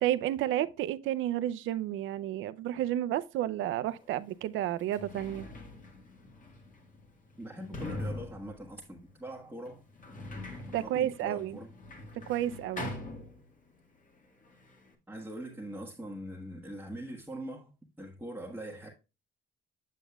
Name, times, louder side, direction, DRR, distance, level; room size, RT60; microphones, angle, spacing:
voice 1, 0.0-5.5 10.7-11.6 12.3-12.9, right 12 dB, 85° right, 0.5 m, -31 dB
Sliding door, 4.0-4.1 4.7-13.9 14.1-14.9, left 2 dB, 40° left, 1.8 m, -43 dB
voice 2, 7.4-9.8 10.8-11.7 15.1-17.7 18.0-18.9, right 1 dB, 10° right, 1.4 m, -42 dB
8.3 x 7.2 x 2.3 m
cardioid pair, 90°, 20 cm